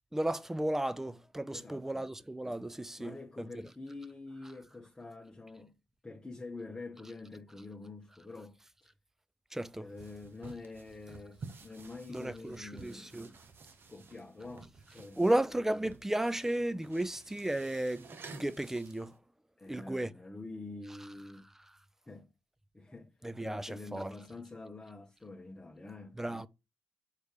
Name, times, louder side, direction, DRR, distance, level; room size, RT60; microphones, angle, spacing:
voice 1, 0.1-3.5 9.5-9.9 12.1-13.3 15.2-19.2 19.7-20.1 23.2-24.1 26.2-26.5, right 1 dB, 10° right, 0.5 m, -34 dB
voice 2, 1.5-2.0 3.0-5.8 6.0-8.9 9.8-13.2 13.8-15.4 19.6-21.4 22.1-22.3 22.7-23.1 23.4-26.2, left 3 dB, 15° left, 1.2 m, -47 dB
sound 1, 9.9-19.2, right 4 dB, 50° right, 1.2 m, -53 dB
6.8 x 3.4 x 4.8 m
cardioid pair, 85°, 5 cm